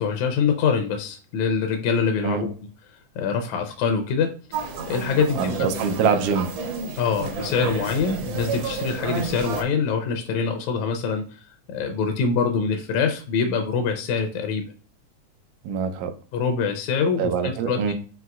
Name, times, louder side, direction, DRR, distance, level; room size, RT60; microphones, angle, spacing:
voice 1, 0.0-2.5 3.2-4.3 4.9-5.7 7.0-11.4 11.7-14.6 16.3-17.9, left 5 dB, 80° left, 5 dB, 1.8 m, -24 dB
sound 1, 4.5-9.6, right 4 dB, 70° right, 1.5 m, -30 dB
voice 2, 5.4-6.5 15.6-16.1 17.2-17.9, right 6 dB, 90° right, 7 dB, 2.1 m, -24 dB
5.9 x 2.8 x 2.3 m, 0.39 s
omnidirectional pair, 3.6 m